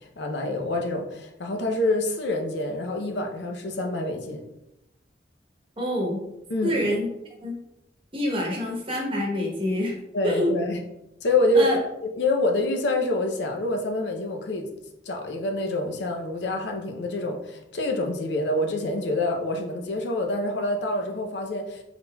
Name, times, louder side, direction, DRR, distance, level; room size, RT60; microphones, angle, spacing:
voice 1, 0.2-4.4 6.5-6.8 10.1-10.8 11.2-11.8 12.2-14.7 15.1-21.8, left 2 dB, 70° left, 3 dB, 0.6 m, -26 dB
voice 2, 5.8-6.2 6.6-7.1 7.4-7.6 8.1-10.0 10.2-10.5 11.5-11.8, left 1 dB, 30° right, -2 dB, 1.0 m, -26 dB
4.0 x 3.7 x 2.2 m, 0.88 s
head